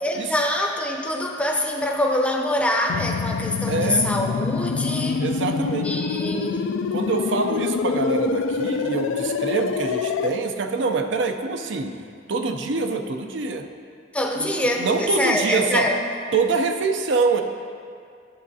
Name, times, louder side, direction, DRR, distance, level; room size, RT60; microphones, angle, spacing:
voice 1, 0.0-5.2 5.8-6.6 14.1-16.1, left 1 dB, 5° left, 1 dB, 0.5 m, -24 dB
sound 1, 2.9-10.3, left 5 dB, 90° left, 0.3 m, -26 dB
voice 2, 3.7-4.1 5.2-5.9 6.9-11.9 12.3-13.7 14.3-15.9 16.3-17.4, right 4 dB, 70° right, 6 dB, 0.5 m, -25 dB
11.0 x 7.3 x 2.7 m, 2.3 s
head